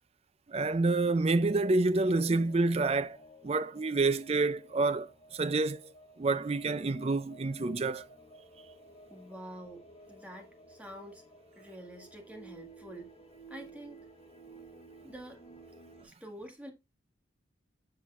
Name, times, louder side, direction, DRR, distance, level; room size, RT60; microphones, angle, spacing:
voice 1, 0.5-3.2 3.4-5.8 6.2-8.0, right 3 dB, 30° right, 0.4 m, -28 dB
sound 1, 1.1-16.1, right 2 dB, 30° left, 1.4 m, -54 dB
voice 2, 9.1-9.8 10.1-11.2 11.6-13.1 13.5-14.1 15.0-15.4 16.0-16.7, right 1 dB, 5° right, 1.6 m, -47 dB
9.9 x 5.6 x 2.4 m
head